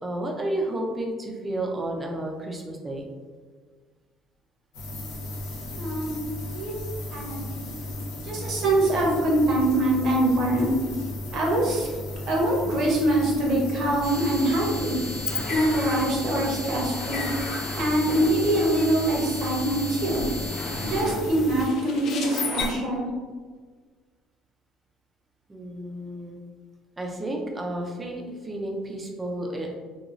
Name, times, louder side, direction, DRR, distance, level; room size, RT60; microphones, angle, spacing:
voice 1, 0.0-3.1 25.5-26.4 27.0-29.8, right 1 dB, 15° right, 1 dB, 0.4 m, -31 dB
sound 1, 4.7-21.7, left 1 dB, 90° left, 0.8 m, -35 dB
voice 2, 5.8-6.1 6.5-6.8 7.1-7.7 8.2-10.7 11.3-11.9 12.3-15.0 15.5-17.3 17.7-20.2 20.8-23.1, right 1 dB, 45° right, -2 dB, 0.7 m, -24 dB
sound 2, 14.0-22.7, left 3 dB, 50° left, 0.4 m, -34 dB
2.9 x 2.3 x 2.4 m, 1.5 s
cardioid pair, 160°, 0 cm